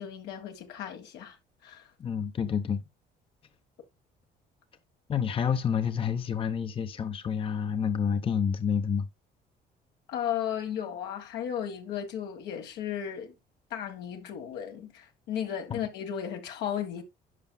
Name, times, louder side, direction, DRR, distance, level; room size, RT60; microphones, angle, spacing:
voice 1, 0.0-1.4 1.6-1.8 10.1-13.3 13.7-17.0, left 9 dB, 80° left, 1.6 m, -35 dB
voice 2, 2.0-2.8 5.1-9.1 15.7-15.8, left 7 dB, 30° left, 0.7 m, -28 dB
11.0 x 5.7 x 2.2 m
cardioid pair, 110°, 17 cm